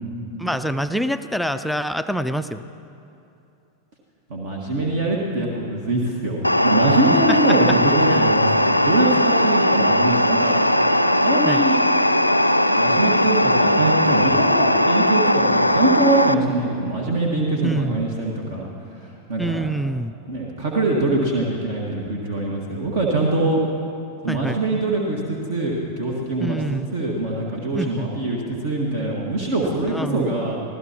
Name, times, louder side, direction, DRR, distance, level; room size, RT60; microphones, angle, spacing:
voice 1, 0.4-2.6 7.3-7.6 8.1-8.3 11.5-11.6 17.6-18.0 19.4-20.1 24.3-24.6 26.4-26.9 27.7-28.1 29.9-30.3, right 1 dB, ahead, 9 dB, 0.4 m, -26 dB
voice 2, 4.3-10.6 11.2-11.8 12.8-18.7 19.0-19.7 20.3-23.6 24.2-26.6 26.9-30.6, right 2 dB, 55° right, -1 dB, 1.7 m, -23 dB
sound 1, 6.4-16.3, left 1 dB, 90° left, 0.4 m, -18 dB
25.0 x 16.0 x 2.9 m, 2.7 s
figure-of-eight pair, 90°, 0 cm